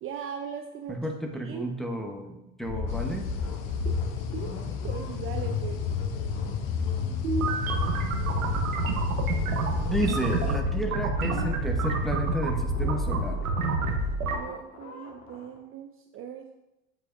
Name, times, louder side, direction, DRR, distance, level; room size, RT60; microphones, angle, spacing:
voice 1, 0.0-1.0 1.4-1.7 3.8-4.0 4.3-4.5 4.8-5.8 14.3-16.6, right 7 dB, 35° right, 4 dB, 0.5 m, -39 dB
voice 2, 0.9-3.3 9.8-13.4, equal, ahead, 1 dB, 1.0 m, -32 dB
sound 1, 2.6-15.6, left 5 dB, 40° left, 1.6 m, -33 dB
sound 2, 2.9-10.6, left 7 dB, 75° left, 0.8 m, -38 dB
sound 3, 7.2-14.4, right 2 dB, 90° right, 1.0 m, -28 dB
8.2 x 4.9 x 2.6 m, 0.94 s
hypercardioid pair, 85°, 41 cm